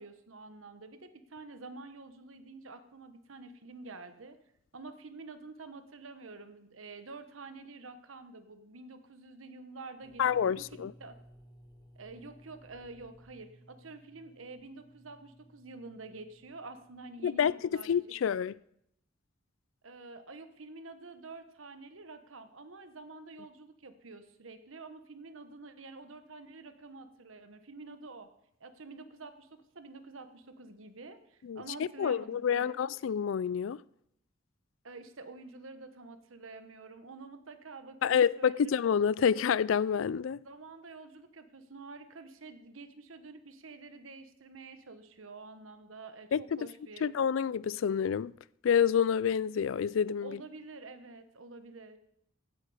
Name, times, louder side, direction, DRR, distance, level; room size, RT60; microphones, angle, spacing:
voice 1, 0.0-4.4 4.7-10.2 10.5-10.7 11.0-11.2 12.0-18.0 19.8-28.3 28.6-29.5 29.7-32.8 34.8-38.6 40.3-47.1 50.2-52.0, right 3 dB, 85° right, 1.2 m, -48 dB
sound 1, 10.0-17.7, right 1 dB, 20° left, 1.2 m, -59 dB
voice 2, 10.2-10.9 17.2-18.6 31.4-33.8 38.0-40.4 46.3-46.6 47.0-48.3 48.6-50.4, left 7 dB, 70° left, 0.4 m, -28 dB
16.0 x 9.2 x 5.0 m
head